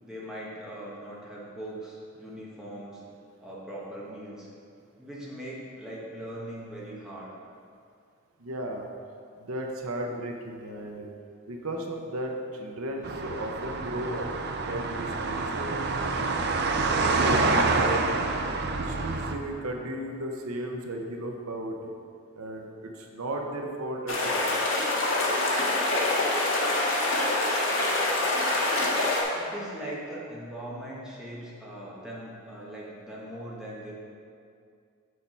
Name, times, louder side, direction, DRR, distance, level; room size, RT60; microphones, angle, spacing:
voice 1, 0.0-3.0 3.4-4.5 5.0-7.3 29.3-33.9, right 1 dB, 5° right, -7 dB, 1.3 m, -40 dB
voice 2, 8.4-8.9 9.4-11.1 11.5-14.3 14.7-16.4 17.1-18.0 18.7-21.9 22.4-24.5, right 1 dB, 85° right, 2 dB, 0.8 m, -35 dB
sound 1, 13.0-19.3, right 3 dB, 50° right, 0.5 m, -27 dB
sound 2, 24.1-29.2, left 2 dB, 60° left, 1.3 m, -25 dB
6.8 x 6.5 x 4.4 m, 2.3 s
head